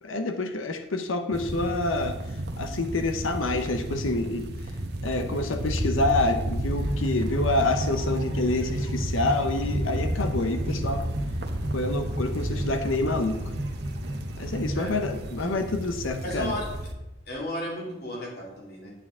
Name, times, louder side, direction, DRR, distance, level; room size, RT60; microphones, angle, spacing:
voice 1, 0.0-2.2 2.6-4.5 5.0-11.1 11.7-13.4 14.4-16.5, left 2 dB, 85° left, 7 dB, 0.9 m, -27 dB
sound 1, 1.3-16.9, right 1 dB, 55° right, 1.0 m, -32 dB
sound 2, 6.8-15.5, right 1 dB, 70° right, 1.9 m, -34 dB
voice 2, 16.2-16.6 17.3-18.9, left 1 dB, 50° left, -3 dB, 2.7 m, -34 dB
9.0 x 8.9 x 3.7 m, 0.98 s
head